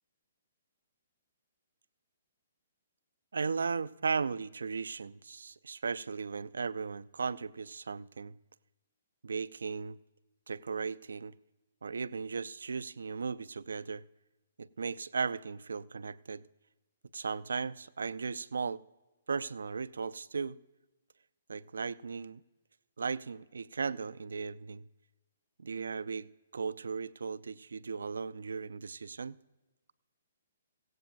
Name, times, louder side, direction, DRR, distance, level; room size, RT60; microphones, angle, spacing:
voice 1, 3.3-8.3 9.2-10.0 10.5-11.3 11.8-14.0 14.6-16.4 17.1-18.8 19.3-20.6 21.5-22.4 23.0-24.8 25.6-29.4, right 5 dB, 70° right, 0.4 m, -36 dB
17.0 x 16.0 x 2.6 m
figure-of-eight pair, 125°, 0 cm